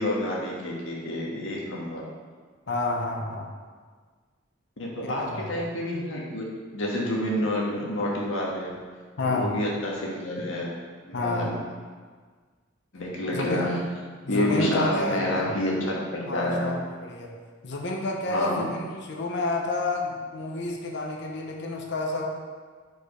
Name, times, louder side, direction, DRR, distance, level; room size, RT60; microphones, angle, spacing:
voice 1, 0.0-2.0 4.8-6.4 6.7-8.7 9.2-10.8 11.1-11.6 12.9-13.8 14.3-16.7 18.3-18.7, left 1 dB, 85° left, -3 dB, 1.4 m, -28 dB
voice 2, 2.7-3.5 5.0-5.5 9.2-9.5 11.1-11.5 13.3-13.8 14.2-15.5 16.3-17.3 17.6-22.3, left 2 dB, 65° left, 0 dB, 0.8 m, -29 dB
4.9 x 4.7 x 5.0 m, 1.5 s
head